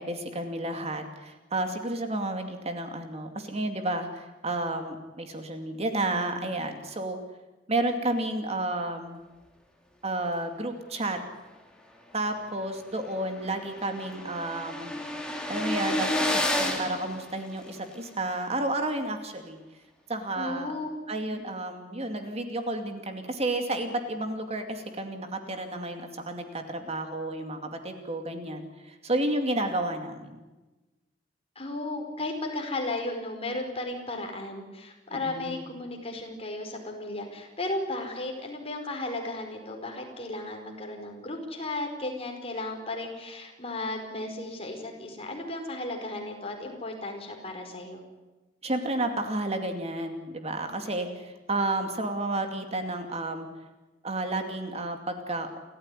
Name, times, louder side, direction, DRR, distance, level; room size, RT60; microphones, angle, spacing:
voice 1, 0.0-7.2 7.7-9.2 10.0-11.2 12.1-14.9 15.5-19.6 20.1-20.7 21.1-30.5 35.1-35.6 48.6-53.5 54.0-55.6, right 2 dB, 35° right, 6 dB, 2.5 m, -31 dB
sound 1, 12.4-12.5 12.8-12.9 13.1-17.9, left 1 dB, 5° left, 3.5 m, -31 dB
voice 2, 20.3-20.9 21.2-21.4 31.5-48.0, left 2 dB, 35° left, 3 dB, 4.9 m, -35 dB
29.5 x 14.5 x 9.9 m, 1.1 s
head